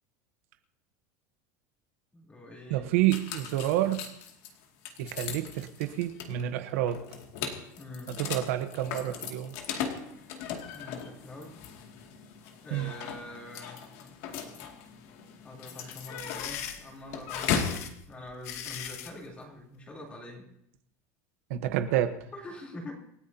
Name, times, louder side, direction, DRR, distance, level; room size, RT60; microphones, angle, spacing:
voice 1, 2.1-2.9 7.8-8.2 10.7-11.6 12.6-13.8 15.4-20.5 22.3-22.9, left 1 dB, 15° left, -1 dB, 3.3 m, -44 dB
voice 2, 2.7-4.1 5.0-7.0 8.1-9.5 12.7-12.9 21.5-22.2, right 13 dB, 65° right, 9 dB, 1.0 m, -29 dB
sound 1, 3.1-17.8, left 7 dB, 55° left, 2.2 m, -38 dB
sound 2, 15.9-19.2, left 10 dB, 80° left, 1.8 m, -39 dB
27.5 x 14.0 x 2.8 m, 0.75 s
supercardioid pair, 175°, 8 cm